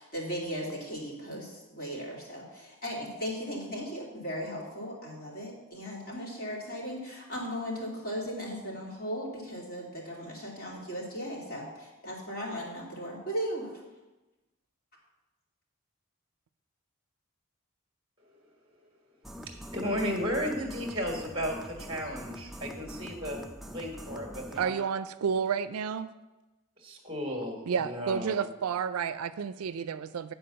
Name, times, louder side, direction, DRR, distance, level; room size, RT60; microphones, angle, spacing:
voice 1, 0.0-13.7, equal, 45° left, -4 dB, 2.7 m, -37 dB
sound 1, 19.2-24.7, equal, ahead, 0.4 m, -44 dB
voice 2, 19.7-24.7 26.8-28.5, equal, 25° right, 1 dB, 1.5 m, -34 dB
voice 3, 24.6-26.1 27.7-30.3, right 6 dB, 85° right, 13 dB, 0.4 m, -31 dB
9.4 x 4.6 x 6.7 m, 1.1 s
head